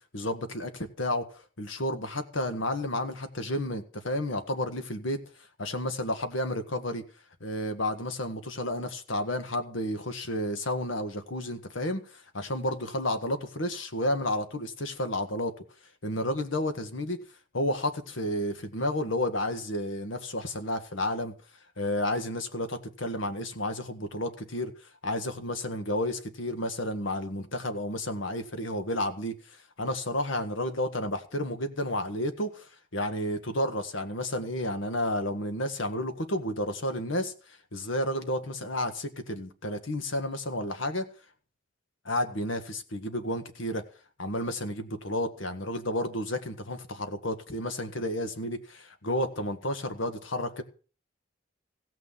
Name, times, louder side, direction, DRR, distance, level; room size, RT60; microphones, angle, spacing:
voice 1, 0.1-5.2 5.6-7.0 7.4-15.5 16.0-17.2 17.5-21.3 21.8-24.7 25.0-29.4 29.8-32.7 32.9-37.3 37.7-41.1 42.1-43.8 44.2-50.6, left 1 dB, 75° left, 1.7 m, -31 dB
16.0 x 6.3 x 7.4 m
head